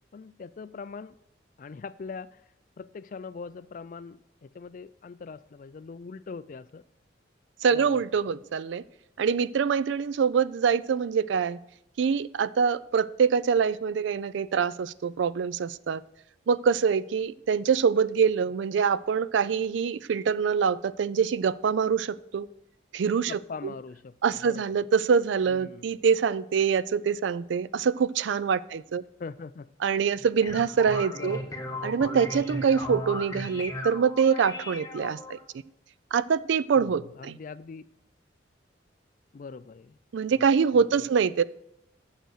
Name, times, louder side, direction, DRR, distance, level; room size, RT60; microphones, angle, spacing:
voice 1, 0.1-1.2 1.6-2.4 2.8-6.8 7.7-8.0 23.3-24.6 25.5-25.9 29.2-29.7 31.1-31.6 36.8-37.8 39.3-40.0 40.4-40.5 40.8-41.1, left 4 dB, 45° left, 0.3 m, -42 dB
voice 2, 7.6-8.8 9.2-11.6 12.0-16.0 16.5-22.5 22.9-23.3 23.6-23.7 24.2-29.0 29.8-31.4 31.8-35.4 36.1-37.4 40.1-41.4, right 6 dB, 70° right, 0.4 m, -25 dB
sound 1, 30.1-35.4, left 1 dB, 20° left, 1.1 m, -36 dB
9.1 x 6.7 x 6.3 m
head